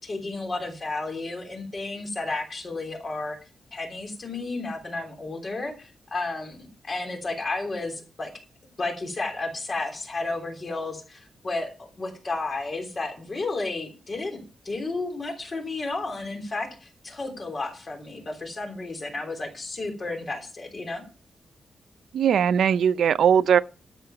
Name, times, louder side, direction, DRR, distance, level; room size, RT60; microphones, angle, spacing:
voice 1, 0.0-3.4 3.7-8.3 8.8-21.0, left 3 dB, 35° left, 3.3 m, -32 dB
voice 2, 22.1-23.6, right 8 dB, 90° right, 0.5 m, -19 dB
12.5 x 6.9 x 5.8 m
wide cardioid pair, 150°, 0 cm